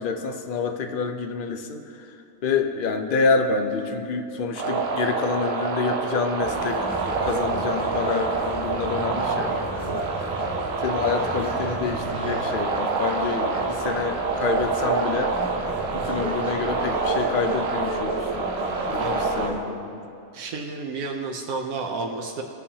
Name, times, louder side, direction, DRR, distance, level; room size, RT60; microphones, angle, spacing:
voice 1, 0.0-1.8 2.4-6.8 7.2-10.0 10.8-15.4 15.9-18.3 18.9-20.1, left 4 dB, 50° left, 5 dB, 0.6 m, -27 dB
sound 1, 4.6-19.5, right 4 dB, 50° right, 0.9 m, -27 dB
sound 2, 6.4-19.6, right 1 dB, 5° right, 1.5 m, -34 dB
voice 2, 20.3-22.4, right 3 dB, 85° right, 1 dB, 1.2 m, -31 dB
20.5 x 7.1 x 2.8 m, 2.6 s
omnidirectional pair, 1.5 m